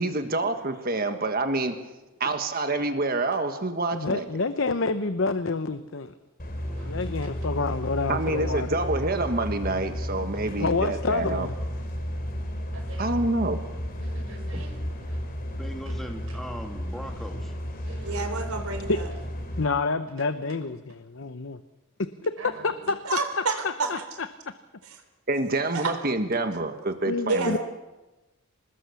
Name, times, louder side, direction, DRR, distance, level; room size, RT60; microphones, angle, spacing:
voice 1, 0.0-1.8 2.2-4.2 8.1-11.5 13.0-13.6 25.3-27.6, right 2 dB, 45° right, 7 dB, 1.5 m, -27 dB
voice 2, 3.9-6.1 6.8-8.7 10.6-11.5 18.9-19.0 19.6-21.6 22.6-23.0 23.6-24.3 27.0-27.6, left 3 dB, 60° left, 11 dB, 0.7 m, -28 dB
sound 1, 6.4-19.6, equal, 40° left, 3.6 m, -33 dB
voice 3, 6.6-7.0 12.7-13.2 14.0-15.2 17.8-18.3 22.4-22.9, right 2 dB, 70° right, 0 dB, 6.7 m, -45 dB
voice 4, 8.7-9.0 18.0-19.1 23.0-23.9 25.7-25.9 27.3-27.6, right 3 dB, 90° right, 6 dB, 3.9 m, -29 dB
voice 5, 15.6-17.5, equal, ahead, 3 dB, 2.2 m, -39 dB
25.5 x 20.0 x 7.0 m, 1.1 s
head